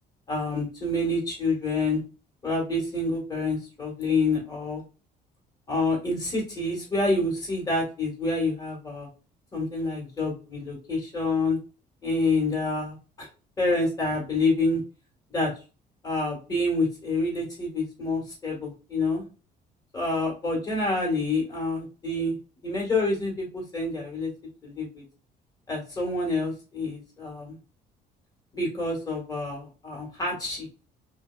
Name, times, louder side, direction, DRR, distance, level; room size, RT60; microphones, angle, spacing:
voice 1, 0.3-2.0 2.4-4.8 5.7-9.1 9.5-11.6 12.0-13.3 13.6-14.8 15.3-15.5 16.0-19.2 19.9-22.4 22.6-24.3 24.6-25.0 25.7-27.6 28.5-30.7, left 2 dB, 20° left, -2 dB, 1.5 m, -27 dB
2.9 x 2.7 x 2.3 m, 0.32 s
cardioid pair, 110°, 17 cm